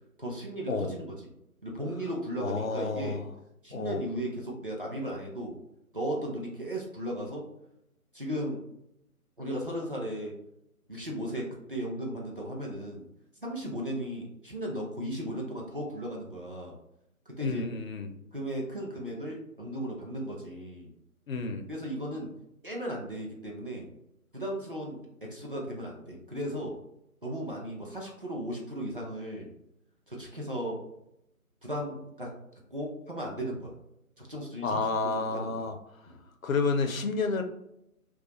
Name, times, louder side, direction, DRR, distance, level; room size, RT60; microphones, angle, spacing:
voice 1, 0.2-1.1 1.6-3.2 3.6-5.6 5.9-7.5 8.1-8.6 9.4-10.3 10.9-13.0 13.4-16.8 17.3-17.7 18.3-20.9 21.4-22.3 22.6-23.9 24.3-26.8 27.2-29.5 30.1-30.8 31.6-32.3 32.7-33.7 34.2-35.7 36.1-36.2, right 1 dB, 40° right, -2 dB, 0.4 m, -36 dB
voice 2, 2.4-3.3 3.7-4.0 17.4-18.1 21.3-21.7 34.6-35.7 36.4-37.4, left 4 dB, 65° left, 6 dB, 0.5 m, -30 dB
2.3 x 2.2 x 2.7 m, 0.81 s
figure-of-eight pair, 145°, 44 cm